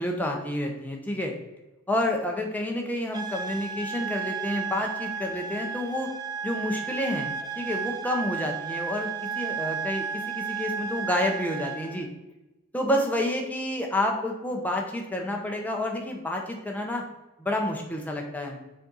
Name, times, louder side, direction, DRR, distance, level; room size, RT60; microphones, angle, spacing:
voice 1, 0.0-1.3 1.9-6.1 6.4-12.1 12.7-17.0 17.4-18.6, left 1 dB, 10° left, 1 dB, 0.8 m, -29 dB
sound 1, 3.1-12.1, right 6 dB, 20° right, 0.4 m, -33 dB
6.5 x 4.2 x 3.9 m, 1.0 s
head